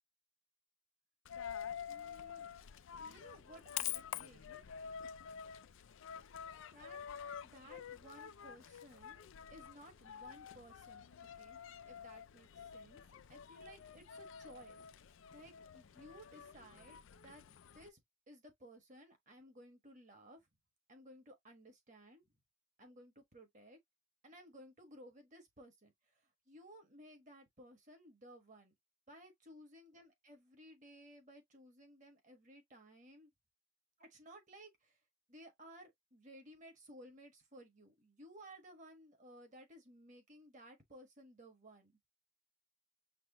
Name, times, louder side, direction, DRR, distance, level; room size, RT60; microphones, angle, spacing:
Coin (dropping), 1.2-17.9, left 9 dB, 60° left, 0.4 m, -48 dB
voice 1, 1.9-2.5 3.0-4.6 6.7-7.0 7.4-9.2 9.5-11.1 11.4-11.6 11.8-13.0 13.3-14.9 15.3-17.4 17.7-18.0 18.3-20.5 20.9-22.4 22.8-23.8 24.2-28.7 29.1-33.3 34.0-35.0 35.3-41.9, right 1 dB, 35° right, 1.4 m, -58 dB
6.0 x 2.0 x 2.9 m
head